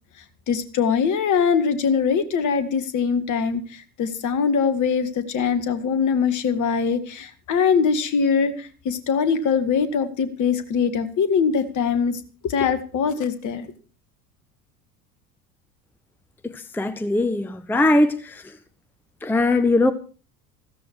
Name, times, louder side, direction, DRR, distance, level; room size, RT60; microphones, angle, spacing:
voice 1, 0.5-13.7, left 6 dB, 40° left, 11 dB, 2.0 m, -22 dB
voice 2, 16.5-18.4 19.2-19.9, left 2 dB, 5° left, 11 dB, 0.8 m, -20 dB
15.5 x 14.0 x 4.7 m, 0.39 s
figure-of-eight pair, 70°, 45 cm